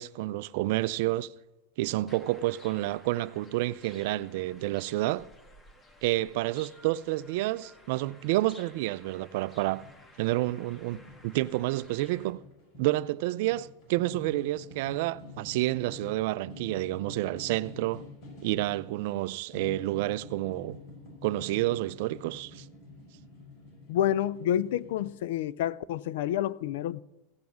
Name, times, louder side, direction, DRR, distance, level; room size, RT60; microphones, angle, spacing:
voice 1, 0.0-1.3 1.8-5.3 6.0-9.8 10.2-12.4 12.8-18.0 18.4-20.8 21.2-22.6, right 17 dB, 65° right, 0.4 m, -29 dB
sound 1, 2.1-12.3, left 1 dB, 20° left, 1.4 m, -55 dB
sound 2, 9.7-10.2 10.4-13.3 13.5-19.0 19.5-25.1, left 2 dB, 50° left, 4.8 m, -48 dB
voice 2, 23.9-27.0, left 11 dB, 75° left, 0.4 m, -29 dB
16.5 x 7.1 x 6.2 m
supercardioid pair, 125°, 0 cm